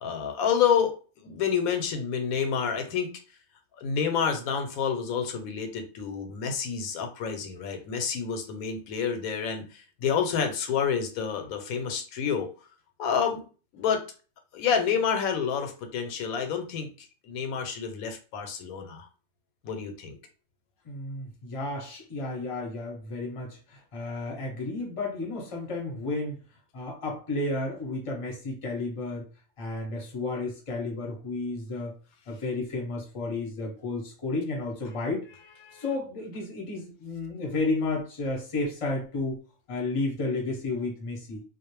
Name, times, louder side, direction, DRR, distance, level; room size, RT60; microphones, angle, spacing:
voice 1, 0.0-3.1 3.8-12.5 13.0-13.4 13.7-14.0 14.5-16.9 17.2-19.1 19.6-20.2 35.6-35.8, left 7 dB, 85° left, 1.0 m, -28 dB
voice 2, 20.8-26.4 26.7-29.3 29.6-31.9 32.3-35.3 35.7-39.4 39.7-41.4, left 2 dB, 30° left, 0.6 m, -32 dB
2.4 x 2.0 x 3.0 m
omnidirectional pair, 1.5 m